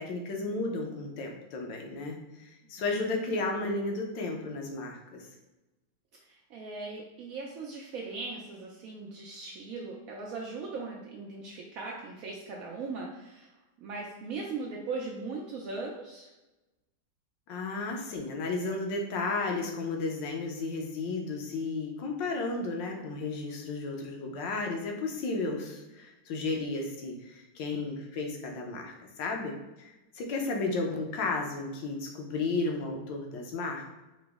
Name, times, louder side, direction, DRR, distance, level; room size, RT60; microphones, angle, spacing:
voice 1, 0.0-5.2 17.5-33.9, left 3 dB, 75° left, 1 dB, 1.4 m, -33 dB
voice 2, 6.3-13.5 13.8-16.3, right 3 dB, 80° right, -2 dB, 0.7 m, -39 dB
4.9 x 2.0 x 3.4 m, 1.0 s
omnidirectional pair, 2.0 m